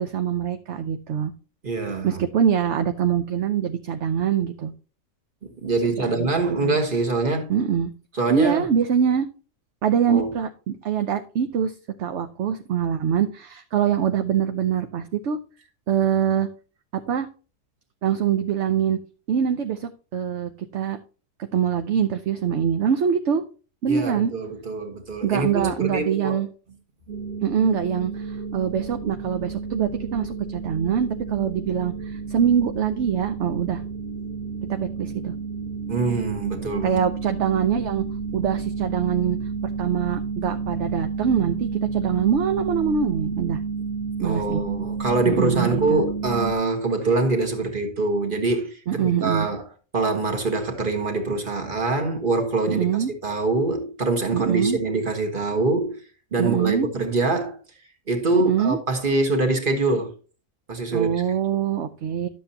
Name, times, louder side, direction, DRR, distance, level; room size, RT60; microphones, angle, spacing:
voice 1, 0.0-1.3 2.0-4.7 6.0-6.3 6.6-6.8 7.5-7.9 8.3-9.3 9.8-15.4 15.9-16.5 16.9-17.3 18.0-19.0 19.3-21.0 21.4-23.4 23.8-24.3 25.2-26.5 27.4-33.8 34.7-35.3 36.8-38.0 38.3-39.4 39.6-43.6 44.2-44.6 45.2-46.0 48.9-49.5 52.7-53.1 54.3-54.8 56.4-56.9 58.3-58.8 60.9-62.3, right 8 dB, 60° right, 1.0 m, -24 dB
voice 2, 1.6-2.2 5.6-7.5 8.1-8.6 10.1-10.3 23.9-26.4 35.9-37.0 44.2-49.6 49.9-52.9 53.2-56.0 56.3-57.6 58.1-60.1 60.7-61.2, right 3 dB, 40° right, 1.8 m, -24 dB
sound 1, 27.1-46.5, right 5 dB, 80° right, 1.9 m, -31 dB
11.5 x 7.5 x 2.8 m
omnidirectional pair, 1.4 m